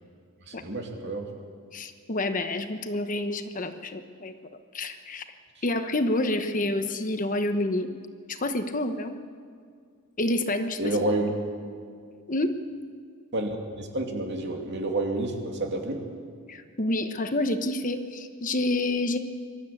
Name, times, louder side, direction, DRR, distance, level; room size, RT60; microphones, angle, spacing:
voice 1, 0.4-1.3 5.6-5.7 10.8-11.3 13.3-16.0, right 2 dB, 55° right, 2 dB, 2.7 m, -29 dB
voice 2, 1.7-4.3 4.7-5.2 5.6-7.9 8.3-9.1 10.2-10.8 12.3-12.6 16.5-19.2, left 1 dB, 40° left, 8 dB, 1.1 m, -28 dB
23.0 x 13.5 x 8.5 m, 2.2 s
head